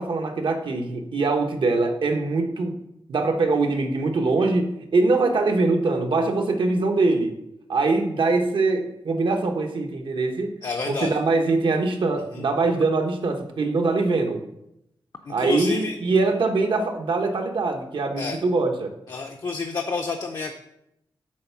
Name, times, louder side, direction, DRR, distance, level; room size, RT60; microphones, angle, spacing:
voice 1, 0.0-2.8 3.1-7.4 7.7-10.6 10.9-14.4 15.3-18.9, right 3 dB, 75° right, 4 dB, 1.0 m, -23 dB
voice 2, 10.6-11.2 12.3-12.4 15.3-16.0 18.2-18.4 19.1-20.6, left 4 dB, 50° left, 3 dB, 0.6 m, -29 dB
7.6 x 4.5 x 5.8 m, 0.83 s
wide cardioid pair, 175°, 9 cm